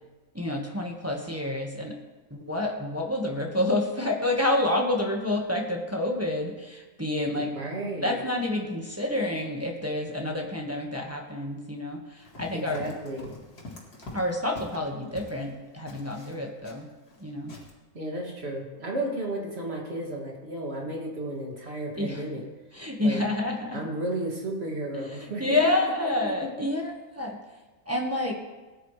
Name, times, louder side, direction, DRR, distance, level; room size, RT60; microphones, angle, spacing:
voice 1, 0.3-1.9 2.3-7.5 8.0-12.8 14.1-16.9 17.2-17.5 22.0-22.2 22.7-23.8 25.2-27.4 27.9-28.3, left 1 dB, 10° right, 0 dB, 1.3 m, -28 dB
voice 2, 7.3-8.2 12.5-13.4 17.9-22.5 23.0-23.2 23.7-25.7 26.0-26.5, right 1 dB, 45° right, -1 dB, 2.6 m, -33 dB
Run, 12.2-15.5 15.9-17.2 17.5-17.7, left 2 dB, 85° left, 2.8 m, -44 dB
18.5 x 10.0 x 3.2 m, 1.2 s
omnidirectional pair, 1.6 m